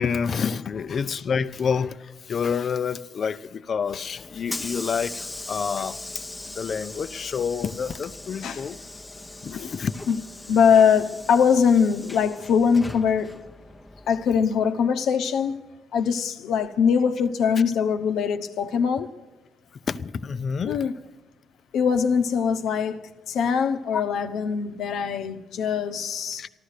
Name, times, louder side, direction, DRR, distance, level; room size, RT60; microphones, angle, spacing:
voice 1, 0.0-8.8 9.4-9.9 19.9-20.8 26.4-26.5, left 6 dB, 50° left, 0.6 m, -28 dB
Hiss / Sliding door, 3.8-14.6, left 2 dB, 10° left, 0.8 m, -40 dB
voice 2, 8.4-8.7 9.5-10.2 10.5-13.4 14.1-15.6 15.9-19.1 20.6-21.0 21.7-26.5, left 6 dB, 75° left, 0.9 m, -22 dB
15.0 x 11.5 x 6.5 m
cardioid pair, 90°, 0 cm